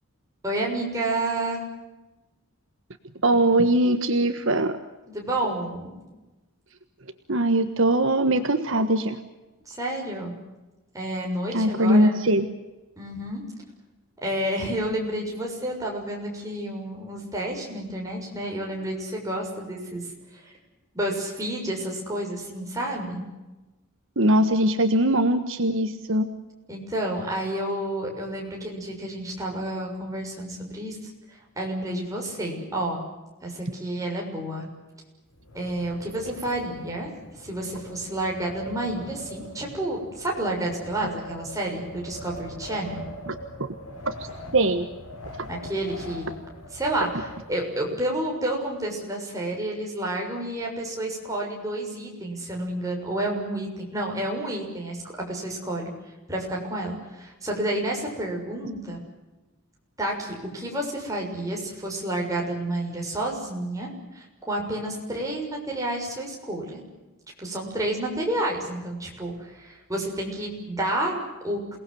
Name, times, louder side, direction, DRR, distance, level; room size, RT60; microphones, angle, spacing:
voice 1, 0.4-1.6 5.1-6.0 9.7-10.4 10.9-12.1 13.0-13.4 14.2-20.0 20.3-20.4 20.9-23.3 26.7-33.0 33.4-34.7 35.5-37.1 37.4-43.1 45.5-46.3 46.7-55.0 55.3-55.9 56.3-59.0 60.0-66.8 67.4-71.8, right 1 dB, 15° right, -1 dB, 6.7 m, -30 dB
voice 2, 3.2-4.8 7.3-9.2 11.5-12.5 24.2-26.3 43.3-43.4 44.0-44.9, right 1 dB, 60° right, 8 dB, 1.4 m, -21 dB
Wind, 35.3-47.9, equal, 75° left, 5.2 m, -42 dB
28.5 x 19.5 x 8.0 m, 1.1 s
head